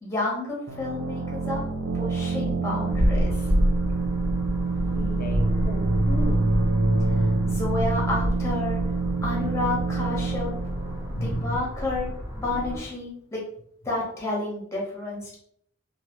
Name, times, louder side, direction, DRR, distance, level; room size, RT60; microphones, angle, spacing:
voice 1, 0.0-1.6 1.9-3.4 7.4-8.8 9.2-10.5 11.2-13.4 13.8-15.4, left 2 dB, 15° left, -3 dB, 1.0 m, -30 dB
sound 1, 0.7-12.2, right 4 dB, 60° right, 0.5 m, -29 dB
sound 2, 2.9-12.8, equal, 25° right, 0.7 m, -26 dB
voice 2, 4.9-6.5 11.0-11.6, equal, 45° left, 3 dB, 0.6 m, -34 dB
3.2 x 2.4 x 2.9 m, 0.68 s
head